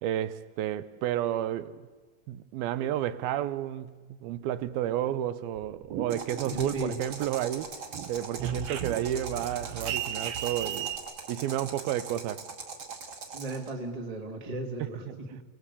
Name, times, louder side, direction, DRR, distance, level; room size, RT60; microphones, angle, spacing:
voice 1, 0.0-1.8 2.3-7.7 8.1-10.9 11.3-12.4 15.1-15.2, right 12 dB, 85° right, 2.8 m, -31 dB
sound 1, 5.6-7.3 7.6-11.0, right 9 dB, 70° right, 1.5 m, -36 dB
sound 2, 6.1-13.7, right 5 dB, 40° right, 2.8 m, -41 dB
voice 2, 6.4-7.0 13.3-15.4, right 2 dB, 15° right, 1.6 m, -35 dB
29.0 x 19.0 x 8.4 m
omnidirectional pair, 4.2 m